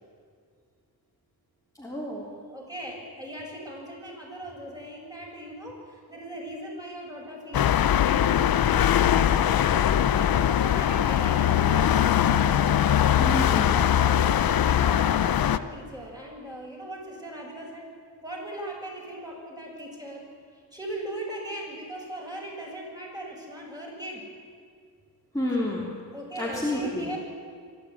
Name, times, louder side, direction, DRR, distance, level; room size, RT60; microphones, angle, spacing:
voice 1, 1.8-2.2 13.2-13.7 25.3-25.9 26.4-27.0, left 1 dB, 10° left, -5 dB, 3.6 m, -29 dB
voice 2, 2.5-9.2 10.0-12.5 13.5-17.9 18.2-20.3 20.5-24.2 26.1-27.2, right 1 dB, 10° right, -2 dB, 7.1 m, -39 dB
sound 1, 7.5-15.6, left 10 dB, 60° left, 0.8 m, -21 dB
25.5 x 12.0 x 9.7 m, 2.1 s
cardioid pair, 100°, 39 cm